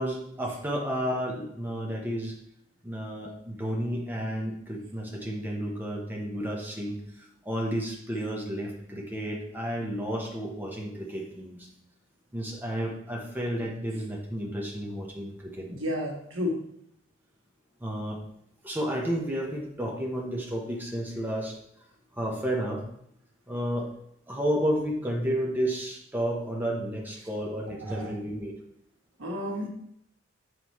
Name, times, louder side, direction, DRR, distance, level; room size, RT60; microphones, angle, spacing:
voice 1, 0.0-2.3 2.8-11.7 12.3-15.7 17.8-18.2 18.6-21.6 22.1-22.8 23.5-23.9 24.3-28.5, equal, 10° right, -1 dB, 0.9 m, -31 dB
voice 2, 15.7-16.6 27.9-28.1 29.2-29.7, left 1 dB, 85° right, 0 dB, 1.4 m, -31 dB
7.5 x 4.9 x 3.1 m, 0.72 s
head